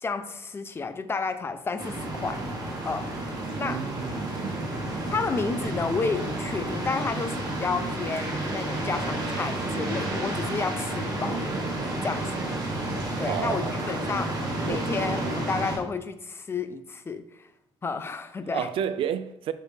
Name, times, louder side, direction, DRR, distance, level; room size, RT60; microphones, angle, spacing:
voice 1, 0.0-2.4 2.8-3.1 3.6-3.8 5.1-11.5 12.0-12.5 13.2-14.3 14.6-17.5 17.8-18.7, left 4 dB, 25° left, 0.6 m, -31 dB
sound 1, 1.8-15.8, right 2 dB, 40° right, 1.7 m, -31 dB
voice 2, 3.4-4.7 13.1-14.0 14.7-14.9 18.5-19.5, right 8 dB, 65° right, 0.5 m, -32 dB
6.4 x 5.1 x 3.4 m
cardioid pair, 110°, 10 cm